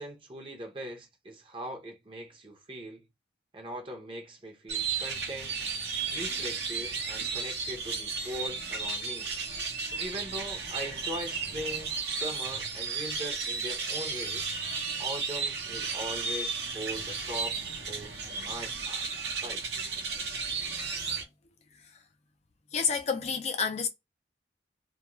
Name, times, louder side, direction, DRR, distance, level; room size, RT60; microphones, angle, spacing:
voice 1, 0.0-3.0 3.5-5.6 6.1-9.3 9.8-14.5 15.0-19.1 19.4-19.6, right 1 dB, 30° right, 0.7 m, -40 dB
sound 1, 4.7-21.2, right 5 dB, 65° right, 0.8 m, -34 dB
voice 2, 22.7-23.9, left 5 dB, 40° left, 0.4 m, -29 dB
2.3 x 2.2 x 2.9 m
head